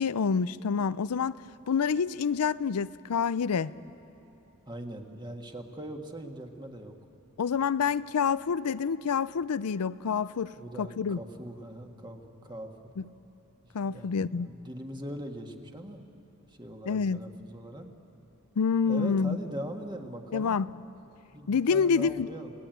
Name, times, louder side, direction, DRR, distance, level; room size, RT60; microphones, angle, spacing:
voice 1, 0.0-1.4 1.7-3.7 7.4-10.5 10.8-11.2 13.7-14.5 16.9-17.2 18.6-19.4 20.3-20.7 21.5-22.3, left 6 dB, 85° left, 16 dB, 0.5 m, -27 dB
voice 2, 4.7-7.0 10.5-12.9 13.6-16.0 16.5-17.9 18.8-20.6 21.3-22.5, right 1 dB, 20° right, 4 dB, 1.7 m, -41 dB
29.0 x 18.5 x 9.2 m, 2.9 s
head